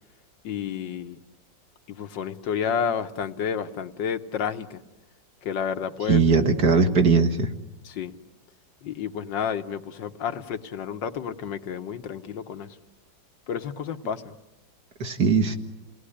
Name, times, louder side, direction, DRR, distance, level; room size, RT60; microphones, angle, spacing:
voice 1, 0.4-1.2 1.9-4.8 5.4-6.2 7.8-8.1 8.8-12.8 13.5-14.4, left 7 dB, 80° left, 1.8 m, -30 dB
voice 2, 6.1-7.5 15.0-15.6, right 4 dB, 60° right, 2.3 m, -19 dB
28.5 x 19.0 x 10.0 m
omnidirectional pair, 2.0 m